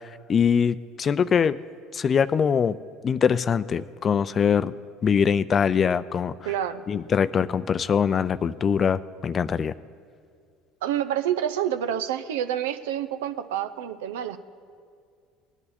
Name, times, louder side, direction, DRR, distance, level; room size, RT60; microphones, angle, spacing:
voice 1, 0.3-1.6 1.9-2.8 3.0-4.7 5.0-6.3 6.9-9.7, left 7 dB, 40° left, 16 dB, 0.4 m, -22 dB
voice 2, 6.4-6.8 10.8-14.4, right 10 dB, 80° right, 11 dB, 0.6 m, -28 dB
19.0 x 9.9 x 4.2 m, 2.2 s
hypercardioid pair, 70°, 0 cm